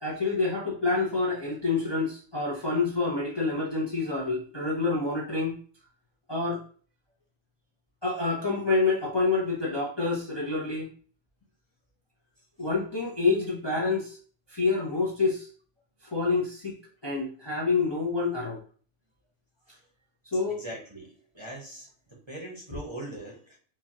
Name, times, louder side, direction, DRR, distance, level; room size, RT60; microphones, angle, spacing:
voice 1, 0.0-5.6 6.3-6.6 8.0-10.9 12.6-14.2 14.5-15.5 16.1-16.8 17.0-18.6 20.3-20.6, left 3 dB, 25° left, -5 dB, 0.6 m, -27 dB
voice 2, 20.5-23.6, right 1 dB, 25° right, -2 dB, 0.9 m, -41 dB
4.7 x 2.4 x 2.8 m, 0.43 s
omnidirectional pair, 1.3 m